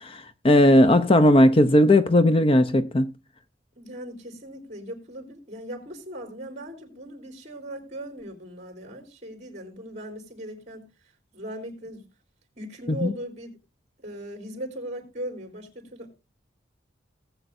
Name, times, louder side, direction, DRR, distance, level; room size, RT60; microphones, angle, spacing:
voice 1, 0.0-3.1 13.0-13.1, left 1 dB, 30° left, 0.6 m, -17 dB
voice 2, 3.8-10.9 11.3-12.1 12.6-13.6 14.0-16.2, right 1 dB, 40° right, 3.6 m, -38 dB
18.5 x 8.0 x 2.6 m
head